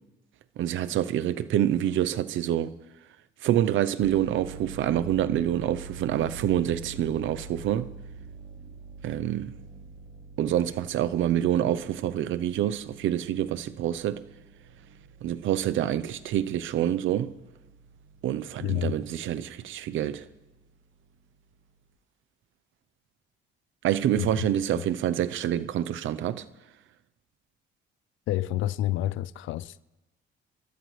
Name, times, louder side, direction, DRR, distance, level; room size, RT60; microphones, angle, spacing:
voice 1, 0.6-2.7 3.4-7.9 9.0-9.6 10.4-14.3 15.2-17.4 18.2-20.3 23.8-26.5, right 11 dB, 80° right, 0.7 m, -27 dB
sound 1, 4.0-21.5, right 4 dB, 55° right, 1.0 m, -46 dB
voice 2, 18.6-18.9 24.2-24.3 24.7-24.8 28.3-29.8, left 14 dB, 80° left, 0.4 m, -29 dB
28.0 x 13.5 x 3.3 m
cardioid pair, 90°, 20 cm